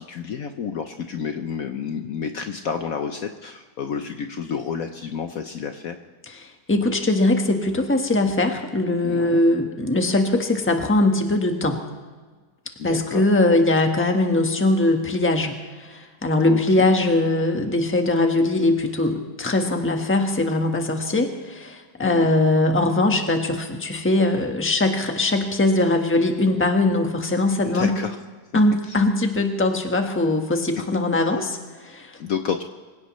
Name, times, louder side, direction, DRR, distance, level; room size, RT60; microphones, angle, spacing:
voice 1, 0.0-6.0 9.0-9.4 12.8-13.3 16.5-16.9 22.0-22.3 27.7-28.2 28.9-29.0 32.2-32.6, left 7 dB, 60° left, 6 dB, 1.1 m, -30 dB
voice 2, 6.3-11.8 12.8-27.9 28.5-32.1, left 2 dB, 10° left, 4 dB, 1.1 m, -21 dB
25.0 x 16.5 x 3.2 m, 1.4 s
omnidirectional pair, 1.9 m